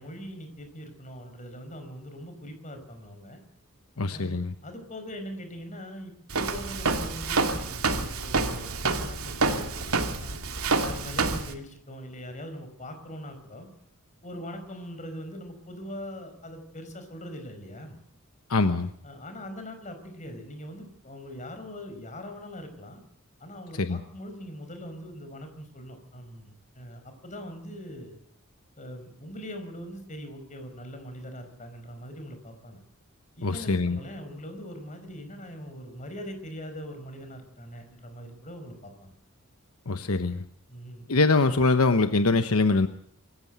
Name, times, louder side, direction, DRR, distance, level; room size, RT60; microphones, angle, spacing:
voice 1, 0.0-3.4 4.1-10.4 10.8-13.7 14.2-18.0 19.0-23.0 23.4-28.1 28.8-32.8 33.4-39.1 40.7-41.1, equal, 35° left, 7 dB, 5.1 m, -41 dB
voice 2, 4.0-4.5 18.5-18.9 23.8-24.0 33.4-34.0 39.9-40.4 41.1-42.9, left 3 dB, 80° left, 10 dB, 1.0 m, -23 dB
Walk footsteps, 6.3-11.5, right 3 dB, 85° right, 2.5 m, -28 dB
25.5 x 14.5 x 8.1 m, 0.64 s
head